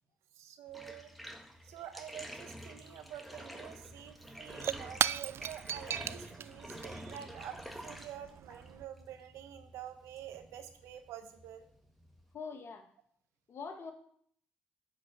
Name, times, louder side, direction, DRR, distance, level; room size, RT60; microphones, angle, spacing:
voice 1, 0.4-1.1 1.6-11.7, right 10 dB, 75° right, 7 dB, 1.3 m, -48 dB
Bathtub (filling or washing), 0.7-12.3, equal, ahead, 1.8 m, -49 dB
Shatter / Crushing, 4.0-8.8, right 9 dB, 55° right, 0.4 m, -38 dB
voice 2, 12.3-12.9 13.5-13.9, left 5 dB, 55° left, 5 dB, 2.0 m, -43 dB
10.5 x 4.9 x 7.6 m, 0.62 s
hypercardioid pair, 50°, 5 cm